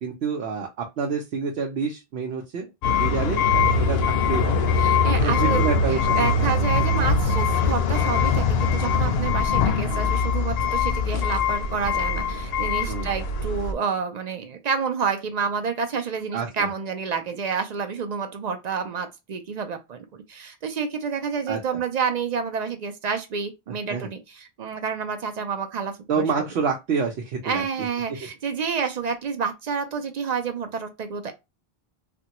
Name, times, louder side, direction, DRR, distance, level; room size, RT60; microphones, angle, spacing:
voice 1, 0.0-2.7 3.0-4.0 4.3-4.7 5.2-6.5 7.3-7.4 12.9-13.1 16.3-16.7 21.5-21.8 23.9-24.1 26.1-27.6, right 5 dB, 85° right, 0.9 m, -28 dB
sound 1, 2.8-13.7, left 4 dB, 75° left, 0.8 m, -22 dB
voice 2, 4.8-26.3 27.4-31.3, right 6 dB, 55° right, 0.5 m, -29 dB
3.3 x 2.2 x 2.9 m
omnidirectional pair, 1.0 m